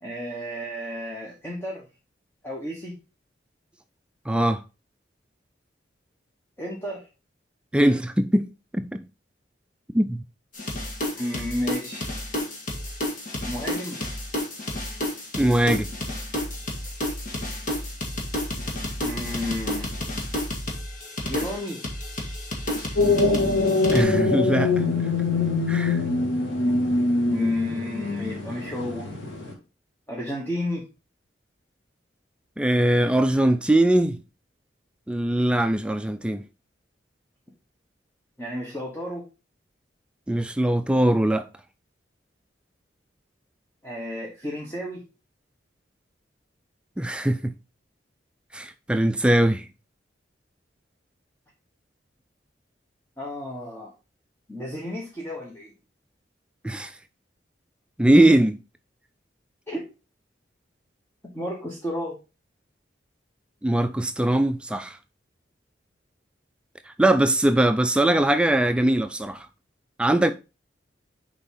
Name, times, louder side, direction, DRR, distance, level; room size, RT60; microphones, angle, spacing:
voice 1, 0.0-1.8 2.4-3.0 6.6-7.0 11.1-12.1 13.4-14.0 19.0-19.9 21.3-21.8 27.3-29.1 30.1-30.8 38.4-39.3 43.8-45.0 53.2-53.9 54.5-55.7 56.6-56.8 59.7-59.8 61.3-62.2, left 1 dB, 15° left, 1.2 m, -32 dB
voice 2, 4.3-4.6 7.7-8.5 8.7-9.0 9.9-10.2 15.4-15.9 23.9-24.8 25.7-26.0 32.6-34.2 35.1-36.4 40.3-41.4 47.0-47.5 48.5-49.6 56.7-56.9 58.0-58.6 63.6-65.0 67.0-69.5 70.0-70.3, right 1 dB, 5° right, 0.3 m, -21 dB
sound 1, 10.5-24.0, left 1 dB, 45° left, 1.8 m, -31 dB
sound 2, 22.9-29.5, left 3 dB, 85° left, 2.0 m, -23 dB
6.8 x 4.9 x 3.8 m
head